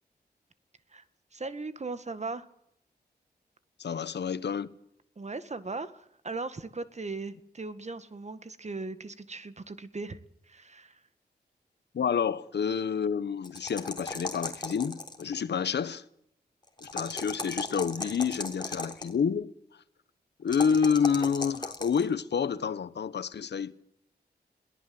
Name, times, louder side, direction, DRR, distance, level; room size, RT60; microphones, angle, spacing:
voice 1, 1.3-2.5 5.2-10.2 10.5-11.0, right 3 dB, 40° right, 1.8 m, -38 dB
voice 2, 3.8-4.7 11.9-16.0 16.8-19.5 20.4-23.8, left 6 dB, 85° left, 1.2 m, -28 dB
sound 1, 13.4-15.3 16.8-19.1 20.5-22.1, left 2 dB, 25° left, 3.7 m, -36 dB
22.5 x 18.0 x 7.9 m
cardioid pair, 70°, 17 cm